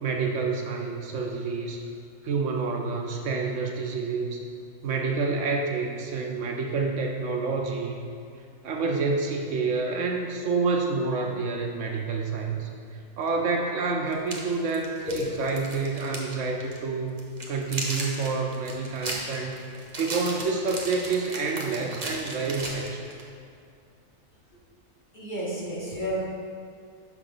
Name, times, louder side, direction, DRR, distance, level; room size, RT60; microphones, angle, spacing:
voice 1, 0.0-1.8 2.2-4.4 4.8-8.0 8.6-12.7 13.2-17.2 17.5-19.6 20.0-23.1, right 4 dB, 70° right, 1 dB, 0.9 m, -28 dB
sound 1, 13.3-13.4 14.1-16.3 16.6-16.8 17.2-23.3, right 2 dB, 35° right, 0.8 m, -35 dB
voice 2, 25.1-26.2, equal, 40° left, -6 dB, 1.3 m, -31 dB
6.0 x 5.6 x 3.8 m, 2.3 s
omnidirectional pair, 1.4 m